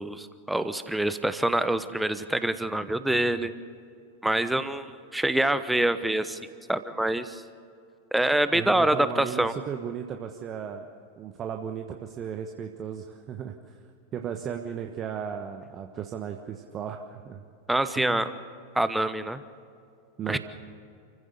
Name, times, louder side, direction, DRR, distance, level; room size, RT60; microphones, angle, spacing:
voice 1, 0.0-3.5 4.2-6.4 6.7-7.4 8.1-9.5 17.7-18.3 18.7-19.4 20.3-20.4, right 1 dB, 5° right, 12 dB, 1.0 m, -26 dB
voice 2, 8.5-10.9 11.2-13.8 14.1-17.4 17.9-18.3 20.2-20.4, right 8 dB, 30° right, 4 dB, 1.2 m, -35 dB
29.0 x 15.5 x 6.9 m, 2.4 s
figure-of-eight pair, 90°, 0 cm